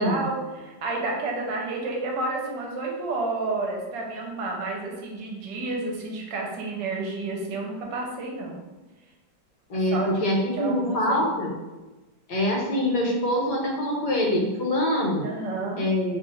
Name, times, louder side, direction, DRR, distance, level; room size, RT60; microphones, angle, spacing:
voice 1, 0.0-8.6 9.9-10.1 10.5-11.3 15.2-15.8, right 3 dB, 70° right, -1 dB, 1.3 m, -30 dB
voice 2, 9.7-11.5 12.3-15.3 15.8-16.2, left 1 dB, 70° left, -1 dB, 1.3 m, -24 dB
3.1 x 2.4 x 4.0 m, 1.1 s
omnidirectional pair, 2.0 m